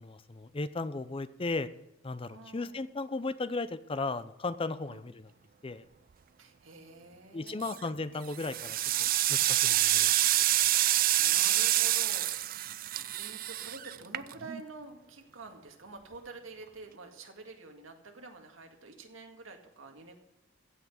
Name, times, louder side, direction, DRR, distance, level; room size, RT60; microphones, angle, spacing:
voice 1, 0.0-1.7 2.0-5.3 5.6-5.8 7.3-10.1, left 3 dB, 25° left, 14 dB, 0.6 m, -36 dB
voice 2, 2.3-2.8 4.9-5.0 6.4-7.7 10.6-12.6 13.1-20.1, right 3 dB, 80° right, 4 dB, 2.0 m, -48 dB
sound 1, 7.5-7.9 8.3-14.6, right 14 dB, 45° right, 0.4 m, -27 dB
15.5 x 5.8 x 8.0 m, 0.90 s
head